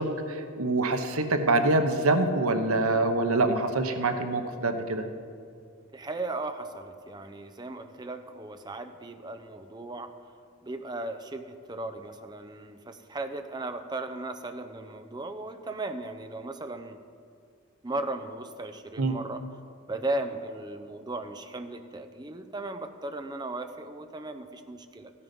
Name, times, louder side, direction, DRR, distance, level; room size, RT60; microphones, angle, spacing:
voice 1, 0.0-5.0 19.0-19.1, right 2 dB, 90° right, 7 dB, 0.9 m, -25 dB
voice 2, 5.9-10.1 10.6-17.0 17.8-19.4 19.9-25.1, right 2 dB, 20° right, 7 dB, 0.6 m, -36 dB
14.5 x 9.7 x 5.3 m, 2.2 s
head